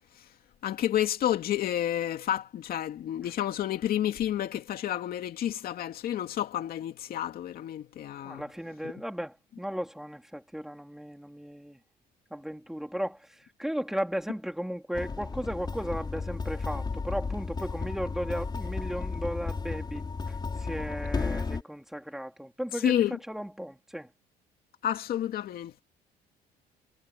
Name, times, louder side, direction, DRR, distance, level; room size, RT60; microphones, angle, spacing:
voice 1, 0.6-8.4 22.8-23.2 24.8-25.8, left 11 dB, 65° left, 2.5 m, -30 dB
voice 2, 8.2-11.8 12.3-24.1, equal, ahead, 3.3 m, -36 dB
sound 1, 14.9-21.6, left 4 dB, 25° left, 6.5 m, -33 dB
cardioid pair, 110°, 17 cm